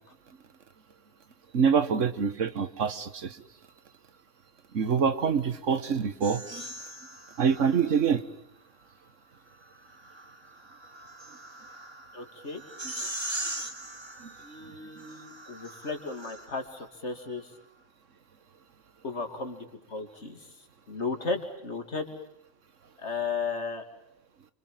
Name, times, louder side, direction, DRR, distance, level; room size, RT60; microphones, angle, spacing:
voice 1, 1.5-3.4 4.7-6.6 7.4-8.2 14.2-14.3, right 6 dB, 85° right, 12 dB, 1.7 m, -25 dB
sound 1, 6.2-8.2 9.6-16.8, right 1 dB, 20° right, 2.1 m, -41 dB
voice 2, 12.1-12.6 13.0-13.1 14.4-17.5 19.0-20.4 20.9-22.1 23.0-23.8, left 4 dB, 65° left, 6 dB, 2.9 m, -35 dB
29.0 x 25.5 x 7.6 m, 0.79 s
omnidirectional pair, 1.2 m